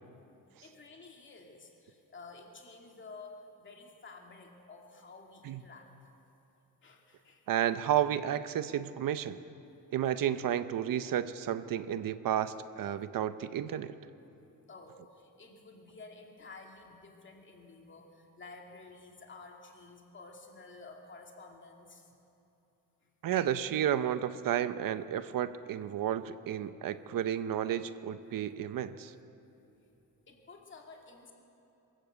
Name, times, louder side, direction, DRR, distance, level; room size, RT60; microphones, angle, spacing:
voice 1, 0.6-6.1 6.8-7.7 14.7-22.2 23.0-23.1 29.8-29.9 30.3-31.3, left 3 dB, 35° left, 1 dB, 2.6 m, -52 dB
voice 2, 7.5-9.4 9.9-13.9 23.2-29.1, right 10 dB, 70° right, 13 dB, 0.7 m, -32 dB
22.5 x 14.0 x 8.1 m, 2.9 s
wide cardioid pair, 155°, 35 cm